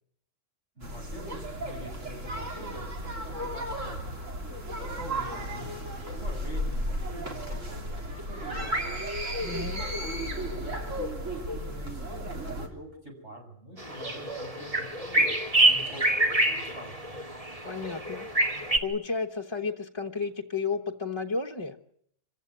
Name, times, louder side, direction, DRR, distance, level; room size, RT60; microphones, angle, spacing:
voice 1, 0.8-4.3 4.7-9.1 9.8-15.3 15.6-17.0, right 1 dB, 65° right, 1 dB, 7.6 m, -45 dB
sound 1, 0.8-12.7, equal, 80° right, 3.6 m, -34 dB
voice 2, 9.4-9.8 17.6-18.3 18.8-21.8, left 4 dB, 25° left, 2 dB, 1.1 m, -32 dB
sound 2, 13.8-18.8, right 1 dB, 30° right, 2.3 m, -26 dB
25.5 x 15.5 x 9.5 m, 0.69 s
omnidirectional pair, 1.3 m